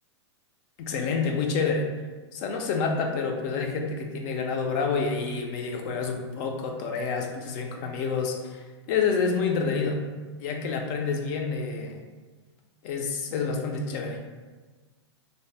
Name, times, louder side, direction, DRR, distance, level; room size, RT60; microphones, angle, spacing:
voice 1, 0.8-1.9 2.3-10.0 10.4-12.0 12.8-14.2, left 5 dB, 45° left, 3 dB, 0.4 m, -28 dB
2.6 x 2.0 x 3.2 m, 1.4 s
hypercardioid pair, 135°, 15 cm